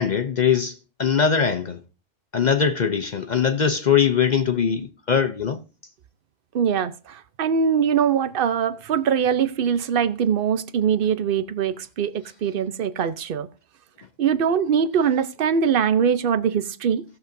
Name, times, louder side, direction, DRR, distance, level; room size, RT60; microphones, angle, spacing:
voice 1, 0.0-1.8 2.3-5.6, left 7 dB, 50° left, 0.6 m, -21 dB
voice 2, 6.5-13.5 14.2-17.0, right 7 dB, 55° right, 0.8 m, -22 dB
17.5 x 6.7 x 2.6 m
omnidirectional pair, 1.3 m